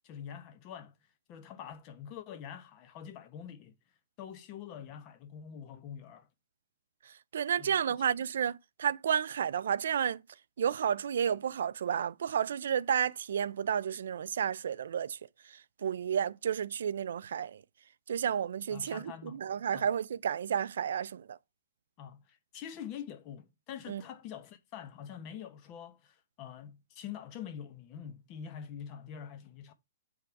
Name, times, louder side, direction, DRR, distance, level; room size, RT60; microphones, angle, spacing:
voice 1, 0.0-0.9 1.3-3.7 4.2-6.3 7.6-8.0 18.7-19.4 19.7-19.9 22.0-29.7, left 8 dB, 30° left, 0.8 m, -45 dB
voice 2, 7.3-10.2 10.6-15.2 15.5-17.6 18.1-21.4 23.9-24.0, right 8 dB, 75° right, 0.4 m, -31 dB
8.3 x 3.6 x 4.6 m
hypercardioid pair, 155°, 0 cm